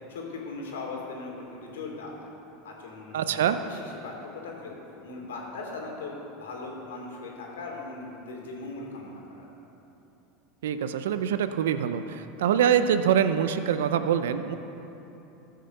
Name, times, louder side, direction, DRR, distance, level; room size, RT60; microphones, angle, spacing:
voice 1, 0.1-2.3 2.6-4.8 5.0-9.5, left 3 dB, 90° left, -1 dB, 2.7 m, -39 dB
voice 2, 3.1-3.6 10.6-14.6, right 9 dB, 85° right, 10 dB, 0.6 m, -24 dB
14.5 x 6.6 x 6.7 m, 3.0 s
hypercardioid pair, 100°, 0 cm